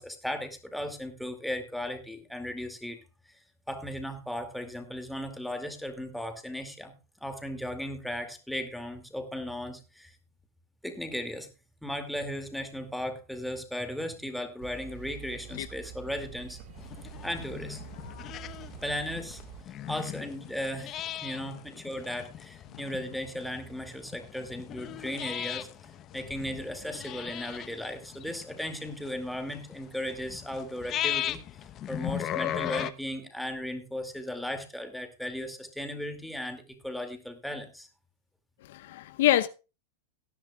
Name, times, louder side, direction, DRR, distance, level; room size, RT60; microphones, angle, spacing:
voice 1, 0.0-3.0 3.7-6.9 7.2-10.1 10.8-11.5 11.8-16.6 17.2-17.8 18.8-19.4 19.9-31.4 31.9-37.9, left 1 dB, ahead, 2.3 m, -36 dB
sound 1, 14.6-19.6, right 9 dB, 50° right, 2.0 m, -46 dB
sound 2, 16.8-32.9, left 11 dB, 30° left, 0.9 m, -38 dB
voice 2, 38.7-39.5, left 14 dB, 65° left, 0.7 m, -26 dB
18.0 x 10.5 x 2.3 m
supercardioid pair, 145°, 0 cm